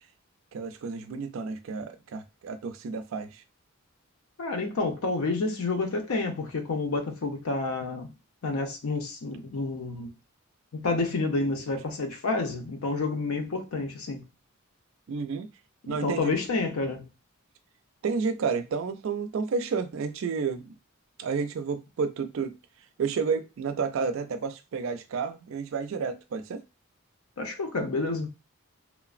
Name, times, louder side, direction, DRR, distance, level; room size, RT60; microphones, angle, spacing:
voice 1, 0.5-3.4 15.1-15.5 15.9-16.3 18.0-20.7 21.2-22.6 23.0-26.6, right 5 dB, 65° right, 0.3 m, -31 dB
voice 2, 4.4-8.1 8.4-10.1 10.7-14.2 15.8-17.1 27.4-28.3, left 3 dB, 80° left, 0.6 m, -29 dB
3.0 x 2.0 x 2.4 m
head